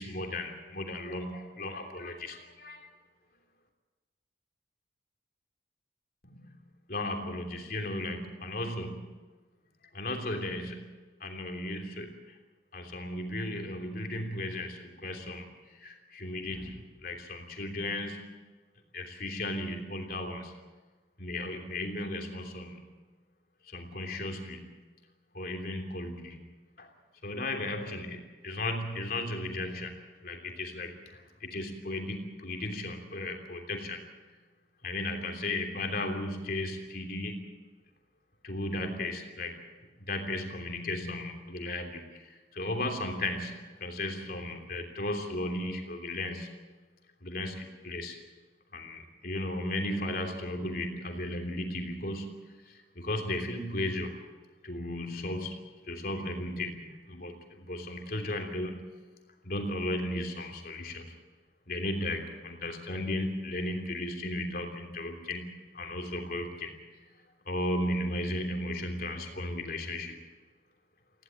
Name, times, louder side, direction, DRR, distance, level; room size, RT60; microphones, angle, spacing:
voice 1, 0.0-2.9 6.3-6.4 6.9-9.1 9.9-10.9 11.2-12.3 12.7-15.5 15.8-18.4 18.9-20.6 21.2-22.8 23.6-24.6 25.3-26.5 26.8-26.9 27.2-29.9 30.2-34.0 34.8-37.6 38.4-39.6 40.0-46.5 47.2-48.2 48.7-54.2 54.6-55.6 55.9-58.9 59.4-61.1 61.7-66.7 67.4-70.2, left 1 dB, 50° left, 3 dB, 3.2 m, -35 dB
20.5 x 16.0 x 9.1 m, 1.3 s
head